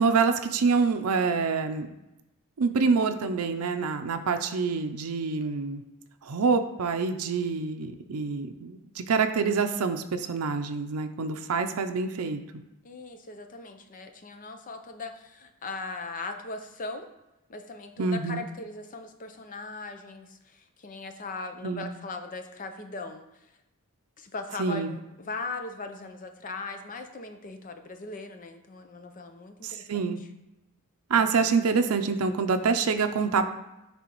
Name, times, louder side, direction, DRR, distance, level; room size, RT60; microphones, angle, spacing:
voice 1, 0.0-1.9 2.6-5.8 6.2-12.4 18.0-18.4 21.6-21.9 24.6-25.0 29.6-30.2 31.1-33.5, right 5 dB, 85° right, 7 dB, 0.5 m, -26 dB
voice 2, 12.8-17.1 17.5-23.2 24.2-30.3 31.1-31.2, left 3 dB, 40° left, 7 dB, 0.6 m, -39 dB
10.0 x 3.5 x 3.0 m, 0.93 s
head